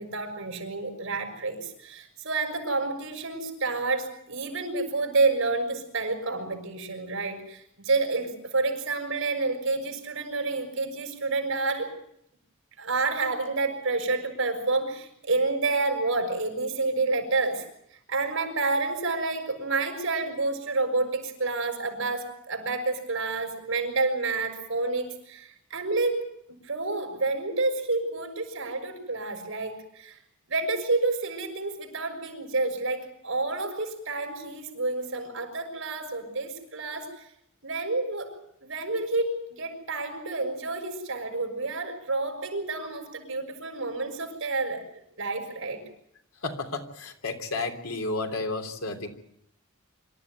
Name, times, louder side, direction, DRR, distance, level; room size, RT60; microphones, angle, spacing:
voice 1, 0.0-11.9 12.8-17.6 18.1-26.2 26.7-30.1 30.5-37.1 37.6-38.3 38.6-44.8 45.2-45.8, right 3 dB, 65° right, 4 dB, 6.3 m, -29 dB
voice 2, 46.4-49.1, left 3 dB, 85° left, 4 dB, 3.3 m, -32 dB
25.5 x 14.0 x 9.3 m, 0.74 s
head